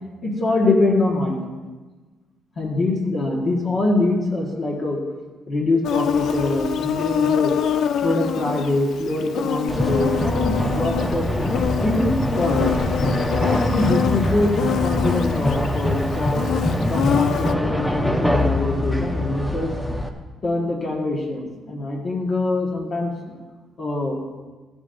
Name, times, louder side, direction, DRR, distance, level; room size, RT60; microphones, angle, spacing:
voice 1, 0.2-1.4 2.6-5.0 5.5-7.5 8.0-12.7 13.3-16.5 16.9-19.7 20.4-23.4 23.8-24.2, left 2 dB, 35° left, -2 dB, 1.6 m, -24 dB
Insect, 5.8-17.5, left 8 dB, 60° left, 0.5 m, -25 dB
sound 1, 9.7-20.1, left 1 dB, 5° left, 0.7 m, -24 dB
15.0 x 10.5 x 2.6 m, 1.3 s
cardioid pair, 145°, 0 cm